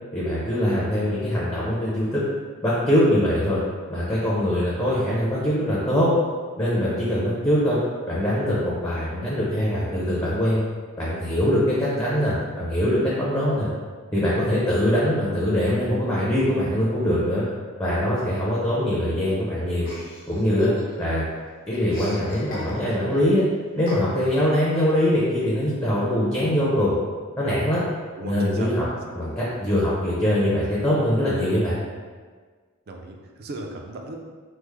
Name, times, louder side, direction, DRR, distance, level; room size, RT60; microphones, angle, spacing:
voice 1, 0.1-2.2 2.6-3.6 3.9-6.1 6.6-7.8 8.1-10.6 11.0-13.7 14.1-17.4 17.8-19.9 20.3-20.7 21.0-21.3 21.7-23.4 23.8-27.0 27.4-27.8 28.2-28.9 29.1-31.8, equal, 15° left, -7 dB, 0.5 m, -22 dB
Chuckle chortle, 19.8-21.2 21.5-23.1 23.9-24.4, left 1 dB, 45° left, 0.8 m, -39 dB
voice 2, 28.2-28.7 32.9-34.2, right 2 dB, 45° right, 2 dB, 0.4 m, -36 dB
3.2 x 2.0 x 3.3 m, 1.5 s
head